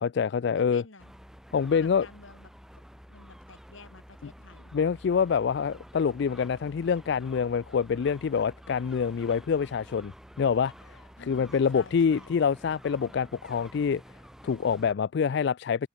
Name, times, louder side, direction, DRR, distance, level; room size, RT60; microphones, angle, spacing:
voice 1, 0.0-0.8 1.5-2.1 4.7-10.1 10.4-11.0 11.3-14.0 14.4-15.9, left 6 dB, 60° left, 0.3 m, -26 dB
voice 2, 0.5-1.1 1.7-2.8 3.1-4.7 11.2-12.3, left 3 dB, 80° left, 3.6 m, -51 dB
sound 1, 1.0-14.9, equal, ahead, 2.2 m, -50 dB
head